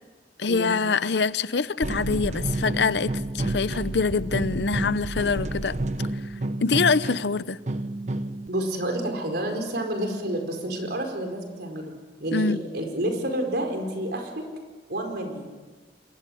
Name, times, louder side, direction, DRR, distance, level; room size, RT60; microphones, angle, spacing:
voice 1, 0.4-5.8 6.6-7.6 12.3-12.6, left 4 dB, 65° left, 0.7 m, -24 dB
sound 1, 1.8-8.5, right 1 dB, 40° right, 0.8 m, -30 dB
voice 2, 8.5-11.9 12.2-14.3 14.9-15.5, right 1 dB, 60° right, 4.8 m, -29 dB
28.0 x 22.0 x 7.8 m
head